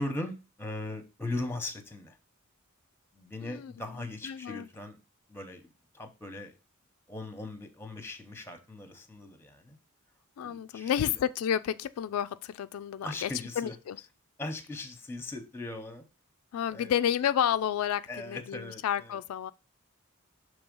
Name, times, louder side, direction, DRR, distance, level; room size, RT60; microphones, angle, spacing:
voice 1, 0.0-2.2 3.1-5.0 5.3-6.5 7.1-9.8 10.4-11.2 13.0-13.7 14.4-16.1 16.7-16.9 18.1-19.2, left 2 dB, 10° left, 0.9 m, -39 dB
voice 2, 3.4-3.7 4.2-4.7 10.4-13.3 13.6-14.0 16.5-19.5, left 9 dB, 80° left, 0.3 m, -30 dB
6.1 x 3.2 x 5.2 m
head